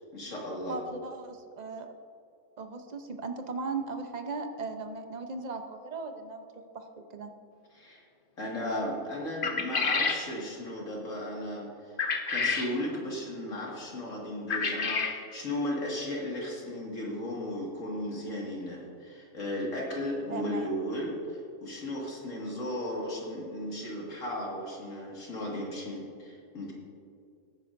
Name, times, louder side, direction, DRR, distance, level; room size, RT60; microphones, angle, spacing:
voice 1, 0.1-0.8 7.7-8.0 8.4-12.0 12.3-26.7, left 1 dB, 75° left, -3 dB, 2.4 m, -35 dB
voice 2, 0.7-1.9 2.6-6.4 6.7-7.3 20.3-20.7, right 4 dB, 40° right, 6 dB, 0.7 m, -37 dB
sound 1, 9.4-10.2 12.0-12.7 14.5-15.2, left 4 dB, 45° left, 0.9 m, -28 dB
17.5 x 9.7 x 2.6 m, 2.4 s
omnidirectional pair, 1.4 m